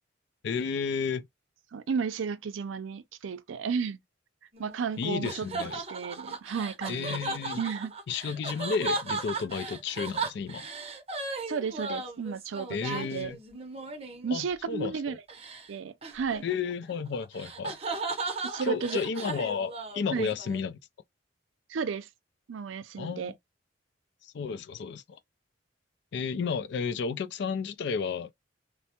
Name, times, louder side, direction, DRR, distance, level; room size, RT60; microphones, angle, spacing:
voice 1, 0.4-1.3 5.0-5.8 6.9-7.6 8.1-10.7 12.7-13.4 14.3-15.2 16.4-17.8 18.6-20.8 23.0-23.3 24.2-25.2 26.1-28.3, left 5 dB, 60° left, 0.3 m, -32 dB
voice 2, 1.7-4.0 4.6-5.5 5.9-7.2 7.6-7.9 11.5-13.3 14.2-15.2 15.7-16.5 18.4-19.0 20.1-20.3 21.7-22.1 22.5-23.3, right 6 dB, 90° right, 0.4 m, -33 dB
sound 1, 4.5-14.4 15.3-15.7 16.0-20.6, right 3 dB, 30° right, 0.6 m, -36 dB
3.2 x 2.0 x 2.8 m
head